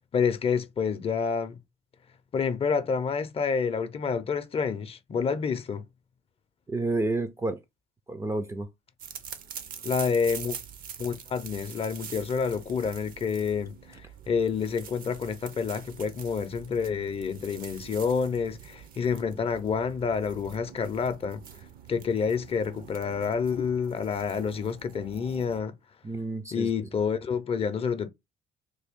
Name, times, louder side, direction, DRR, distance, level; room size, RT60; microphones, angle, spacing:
voice 1, 0.1-1.6 2.3-5.8 9.8-10.6 11.0-21.4 21.9-25.7 26.5-28.1, left 6 dB, 35° left, 0.5 m, -28 dB
voice 2, 6.7-7.6 8.1-8.7 26.0-26.7, right 2 dB, 15° right, 0.4 m, -30 dB
sound 1, 9.0-25.6, right 8 dB, 60° right, 0.7 m, -45 dB
3.4 x 2.2 x 3.5 m
cardioid pair, 110°, 17 cm